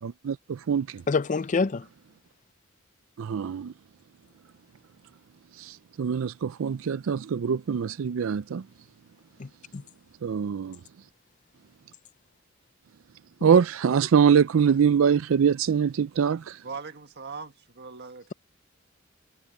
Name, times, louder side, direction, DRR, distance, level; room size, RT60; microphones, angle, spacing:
voice 1, 0.0-1.0 3.2-3.7 5.6-8.6 10.2-10.8 13.4-16.6, right 7 dB, 75° right, 0.4 m, -23 dB
voice 2, 1.1-1.9 9.4-9.8, left 4 dB, 40° left, 0.5 m, -26 dB
voice 3, 16.6-18.3, right 4 dB, 55° right, 1.7 m, -40 dB
head